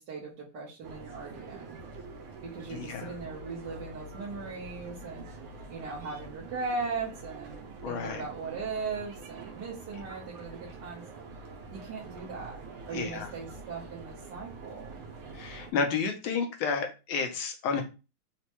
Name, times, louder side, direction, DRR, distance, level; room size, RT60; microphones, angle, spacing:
voice 1, 0.0-1.8 2.4-5.2 5.7-11.0 11.7-12.6 12.9-15.0, right 4 dB, 60° right, -6 dB, 1.4 m, -38 dB
sound 1, 0.8-15.7, right 3 dB, 90° right, 1.6 m, -46 dB
voice 2, 2.7-3.1 7.8-8.3 12.9-13.3 15.3-17.8, left 5 dB, 80° left, 4 dB, 1.5 m, -31 dB
4.3 x 2.2 x 2.9 m, 0.30 s
omnidirectional pair, 2.3 m